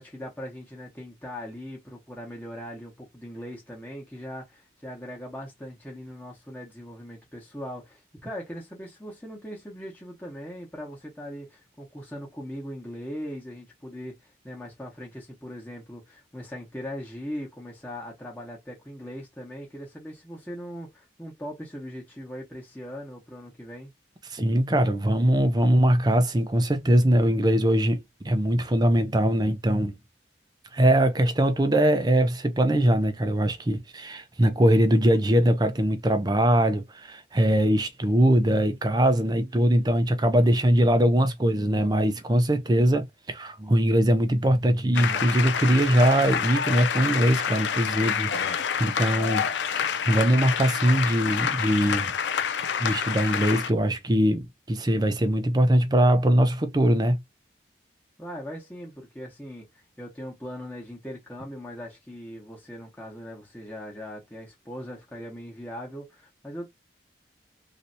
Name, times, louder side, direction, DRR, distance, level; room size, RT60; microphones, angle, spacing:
voice 1, 0.0-23.9 58.2-66.7, equal, 10° left, 1.1 m, -40 dB
voice 2, 24.3-29.9 30.7-52.1 52.8-57.2, right 1 dB, 20° right, 0.5 m, -22 dB
sound 1, 44.9-53.7, left 7 dB, 75° left, 0.5 m, -28 dB
3.2 x 2.7 x 2.6 m
head